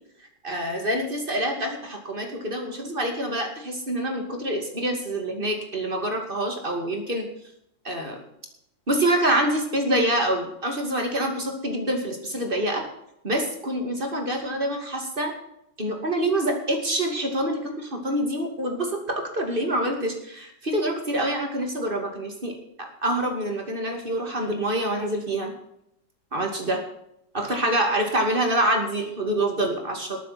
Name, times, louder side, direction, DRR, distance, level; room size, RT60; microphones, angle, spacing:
voice 1, 0.4-7.3 7.8-8.2 8.9-12.9 13.2-15.3 15.8-25.5 26.3-26.8 27.3-30.2, right 1 dB, 25° right, 3 dB, 2.5 m, -26 dB
19.5 x 9.1 x 4.4 m, 0.77 s
omnidirectional pair, 2.0 m